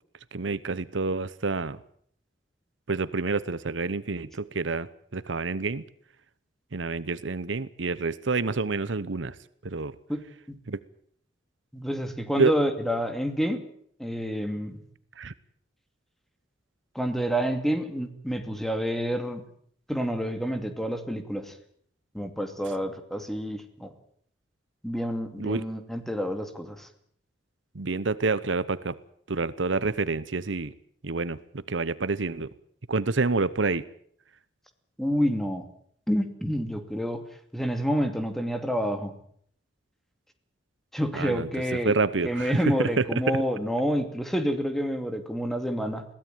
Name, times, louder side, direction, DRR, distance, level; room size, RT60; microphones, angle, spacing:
voice 1, 0.3-1.8 2.9-5.8 6.7-9.3 9.6-9.9 10.7-10.8 12.4-12.5 15.2-15.3 25.4-25.6 27.7-29.0 29.3-30.7 31.0-32.5 32.9-33.8 41.1-41.5 41.8-43.4, right 3 dB, 75° right, 17 dB, 0.9 m, -28 dB
voice 2, 10.1-10.6 11.7-13.6 14.0-14.8 16.9-19.4 19.9-21.5 22.1-23.9 24.8-26.9 35.0-35.7 36.1-37.2 37.5-39.1 40.9-41.9 42.2-46.0, equal, ahead, 7 dB, 2.5 m, -28 dB
22.0 x 16.5 x 9.2 m, 0.64 s
head